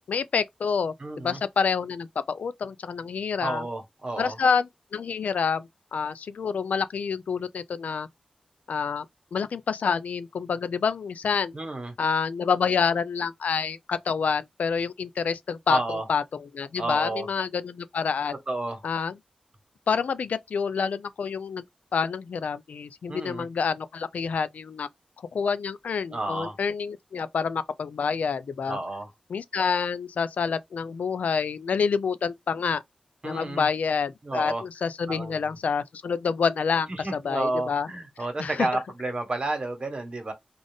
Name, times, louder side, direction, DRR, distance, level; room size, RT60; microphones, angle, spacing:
voice 1, 0.1-3.6 4.2-8.1 8.7-9.1 9.3-11.5 12.0-15.8 16.1-18.3 18.8-19.1 19.9-21.6 21.9-24.9 25.3-28.8 29.3-32.8 33.2-37.9 38.4-38.7, left 6 dB, 85° left, 0.4 m, -27 dB
voice 2, 1.0-1.4 3.4-4.4 11.5-11.9 15.7-16.1 16.8-17.3 18.5-18.8 23.1-23.4 26.1-26.6 28.7-29.1 33.2-33.7 34.2-34.6 35.1-35.6 36.9-40.3, right 2 dB, 40° right, 1.3 m, -31 dB
3.8 x 2.4 x 3.5 m
wide cardioid pair, 80°, 2 cm